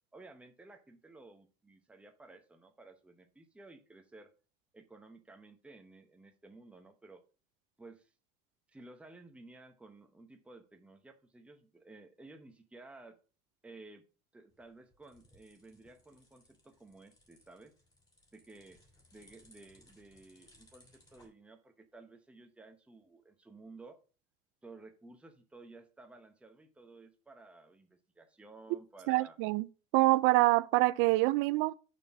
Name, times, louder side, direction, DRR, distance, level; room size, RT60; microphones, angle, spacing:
voice 1, 0.1-4.3 4.7-7.2 7.8-8.1 8.7-13.2 13.6-14.1 14.3-17.7 18.3-18.8 19.1-24.0 24.6-29.4, right 3 dB, 5° right, 0.9 m, -55 dB
sound 1, 14.5-21.3, left 1 dB, 20° left, 3.0 m, -65 dB
voice 2, 29.1-29.7 29.9-31.7, right 20 dB, 80° right, 0.4 m, -26 dB
6.7 x 4.5 x 5.9 m
cardioid pair, 140°, 19 cm